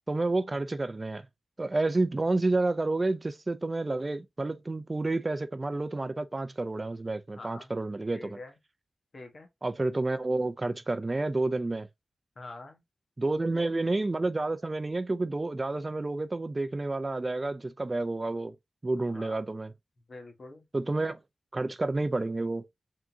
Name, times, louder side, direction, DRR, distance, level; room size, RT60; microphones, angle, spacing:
voice 1, 0.1-1.2 1.6-8.4 9.6-11.9 13.2-18.5 18.8-19.7 20.7-21.2 21.5-22.6, right 2 dB, 30° right, 0.4 m, -30 dB
voice 2, 7.3-7.7 8.1-8.6 9.1-9.5 12.4-12.8 13.5-13.7 19.0-19.4 20.1-20.7, left 2 dB, 50° left, 1.2 m, -46 dB
3.7 x 3.6 x 2.7 m
wide cardioid pair, 95°, 0 cm